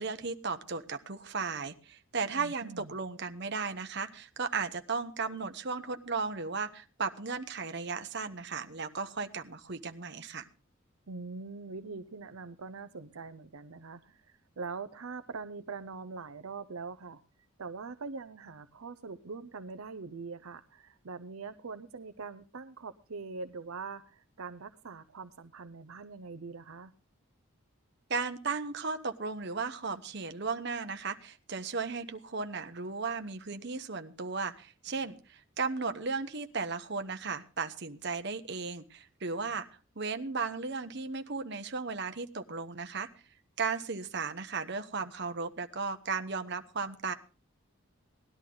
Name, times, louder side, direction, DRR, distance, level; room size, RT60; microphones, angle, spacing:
voice 1, 0.0-10.4 28.1-39.7 40.0-43.1 43.6-47.1, right 4 dB, 50° right, 8 dB, 1.0 m, -35 dB
voice 2, 2.4-2.9 11.1-17.2 17.6-26.9 39.4-39.6, right 4 dB, 80° right, 9 dB, 0.7 m, -43 dB
18.5 x 11.5 x 3.8 m, 0.32 s
head